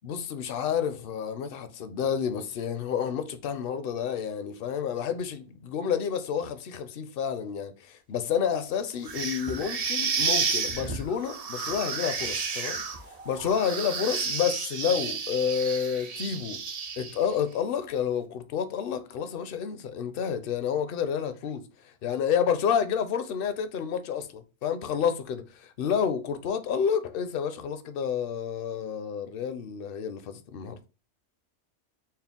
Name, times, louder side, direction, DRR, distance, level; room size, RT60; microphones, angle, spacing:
voice 1, 0.0-16.6 17.0-30.8, left 7 dB, 60° left, 0.7 m, -30 dB
sound 1, 9.0-17.3, right 5 dB, 45° right, 0.5 m, -31 dB
4.4 x 2.1 x 3.5 m
omnidirectional pair, 1.2 m